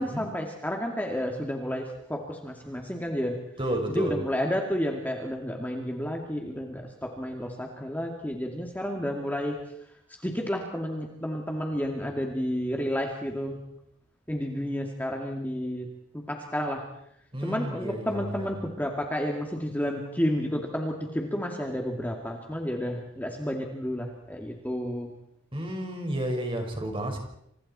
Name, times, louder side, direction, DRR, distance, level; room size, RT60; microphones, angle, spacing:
voice 1, 0.0-3.4 3.9-9.6 10.2-13.6 14.3-15.9 16.1-16.8 17.4-25.1, equal, 10° left, 1 dB, 2.4 m, -31 dB
voice 2, 3.6-4.2 17.3-18.5 25.5-27.2, right 1 dB, 25° right, 3 dB, 5.2 m, -31 dB
29.0 x 28.0 x 4.4 m, 0.74 s
head